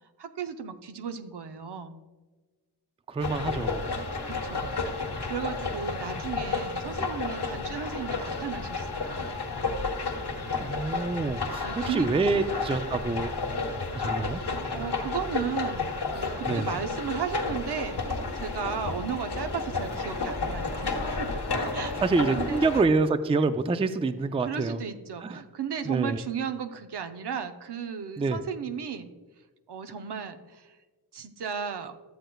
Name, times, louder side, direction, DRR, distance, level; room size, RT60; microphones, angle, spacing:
voice 1, 0.2-2.0 4.2-4.7 5.0-9.3 11.6-12.4 14.7-21.4 21.7-21.9 22.3-22.6 24.4-29.1 29.7-30.7 31.1-31.9, right 7 dB, 75° right, 8 dB, 0.7 m, -35 dB
voice 2, 3.1-3.8 10.6-13.3 13.9-14.4 16.4-16.7 21.5-21.7 22.0-24.8 25.2-25.4 25.8-26.2 28.2-28.4, right 3 dB, 15° right, 11 dB, 0.3 m, -27 dB
sound 1, 3.2-22.8, left 3 dB, 75° left, 1.3 m, -32 dB
13.5 x 7.7 x 2.3 m, 1.3 s
wide cardioid pair, 100°, 40 cm